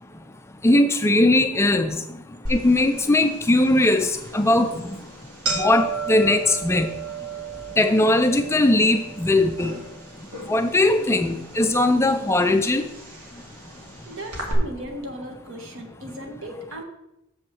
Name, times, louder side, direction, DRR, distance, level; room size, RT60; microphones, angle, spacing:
voice 1, 0.6-2.0 2.5-4.9 5.6-6.9 7.8-9.7 10.5-12.8, left 2 dB, 10° left, 8 dB, 0.3 m, -19 dB
sound 1, 2.5-14.5, right 4 dB, 85° right, 2.2 m, -35 dB
voice 2, 11.0-11.5 14.1-16.8, right 1 dB, 60° right, 3 dB, 1.5 m, -37 dB
7.2 x 5.4 x 6.9 m, 0.89 s
head